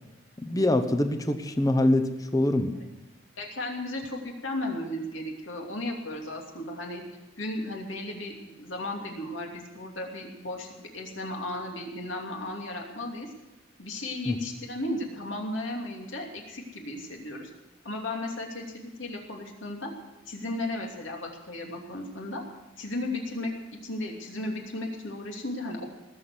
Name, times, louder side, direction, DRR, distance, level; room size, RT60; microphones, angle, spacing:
voice 1, 0.4-2.7 14.3-14.4, left 1 dB, 20° left, 7 dB, 1.0 m, -24 dB
voice 2, 3.4-7.0 7.4-13.3 13.8-17.5 17.8-19.9 20.3-22.4 22.8-25.8, left 1 dB, 65° left, 0 dB, 2.8 m, -35 dB
19.0 x 7.3 x 8.2 m, 1.0 s
head